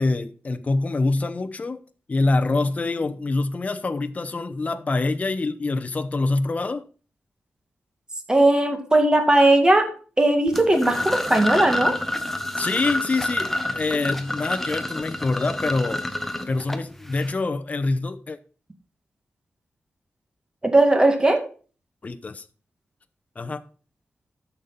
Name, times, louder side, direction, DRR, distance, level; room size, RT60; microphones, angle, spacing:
voice 1, 0.0-1.8 2.1-6.9 12.6-16.0 16.5-18.4 22.0-22.4 23.4-23.6, left 3 dB, 35° left, 0.8 m, -25 dB
voice 2, 8.3-9.9 10.2-11.9 20.6-21.4, right 1 dB, 20° right, 2.1 m, -18 dB
sound 1, 10.5-17.3, left 1 dB, 5° left, 1.1 m, -28 dB
13.0 x 6.8 x 4.1 m
wide cardioid pair, 120°, 4 cm